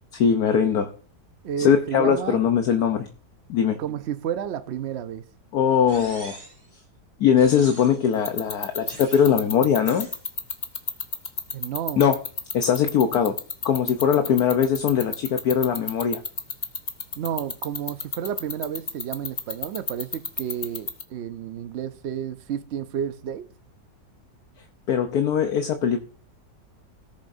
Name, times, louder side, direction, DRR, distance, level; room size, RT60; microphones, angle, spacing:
voice 1, 0.2-0.9 1.6-3.1 3.5-3.8 5.5-6.4 7.2-10.1 12.0-12.2 12.5-13.3 13.6-16.2 24.9-26.0, left 7 dB, 65° left, 1.3 m, -21 dB
voice 2, 1.4-2.4 3.8-5.3 11.5-12.0 17.2-23.5, right 9 dB, 75° right, 0.6 m, -31 dB
sound 1, 5.9-6.7 7.4-8.1 8.9-9.4 9.8-10.2, right 2 dB, 30° right, 2.5 m, -44 dB
sound 2, 8.1-21.0, left 5 dB, 35° left, 0.9 m, -28 dB
18.5 x 7.3 x 2.6 m
omnidirectional pair, 1.8 m